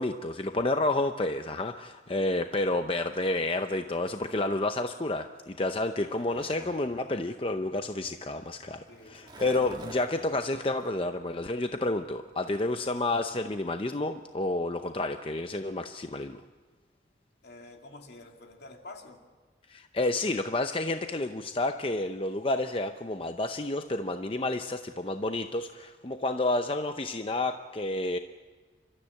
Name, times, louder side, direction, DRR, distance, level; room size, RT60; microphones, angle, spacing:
voice 1, 0.0-16.4 19.7-28.2, left 2 dB, 30° left, 7 dB, 0.6 m, -30 dB
Skateboard, 5.5-13.0, right 2 dB, 25° right, 2.1 m, -50 dB
voice 2, 8.9-9.3 17.4-19.2, left 2 dB, 70° left, 3 dB, 2.5 m, -48 dB
29.5 x 13.5 x 8.6 m, 1.4 s
head